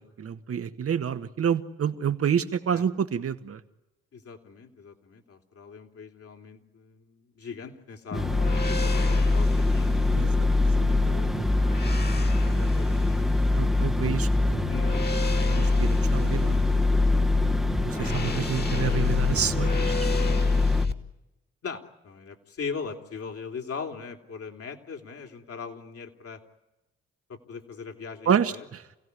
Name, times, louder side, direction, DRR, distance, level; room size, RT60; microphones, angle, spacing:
voice 1, 0.0-3.6 10.1-10.5 11.0-11.2 11.8-12.7 13.5-14.7 15.5-16.6 17.8-20.0 28.3-28.8, right 8 dB, 50° right, 10 dB, 1.7 m, -29 dB
voice 2, 4.1-8.3 8.7-11.3 12.6-13.2 14.7-15.0 21.6-26.4 27.3-28.6, left 5 dB, 55° left, 4 dB, 3.4 m, -40 dB
sound 1, 8.1-20.9, left 3 dB, 35° left, 2.5 m, -24 dB
sound 2, 8.1-20.9, equal, ahead, 1.5 m, -32 dB
28.5 x 17.0 x 9.8 m, 0.99 s
hypercardioid pair, 50°, 29 cm